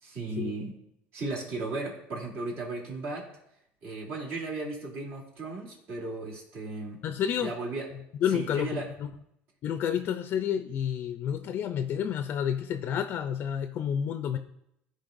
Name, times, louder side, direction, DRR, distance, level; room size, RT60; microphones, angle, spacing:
voice 1, 0.0-0.8 1.1-3.3 3.8-7.0 7.4-7.8 8.3-8.9, right 2 dB, 55° right, -2 dB, 3.0 m, -35 dB
voice 2, 7.0-7.5 8.1-9.1 9.6-14.4, left 9 dB, 50° left, 8 dB, 0.5 m, -30 dB
14.5 x 5.2 x 2.6 m, 0.77 s
supercardioid pair, 115°, 5 cm